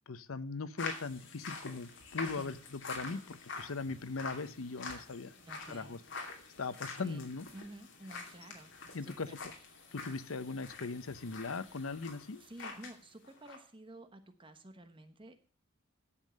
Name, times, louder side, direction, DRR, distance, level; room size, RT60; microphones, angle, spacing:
voice 1, 0.1-5.3 5.7-6.0 6.6-7.5 8.9-9.3 9.9-12.4, left 4 dB, 75° left, 15 dB, 0.8 m, -39 dB
sound 1, 0.8-13.0 13.2-13.6, left 4 dB, 60° left, 2.7 m, -46 dB
voice 2, 5.5-6.0 7.0-8.7 9.0-9.4 12.4-15.4, right 1 dB, 25° right, 8 dB, 1.1 m, -52 dB
11.0 x 7.5 x 6.4 m, 0.42 s
head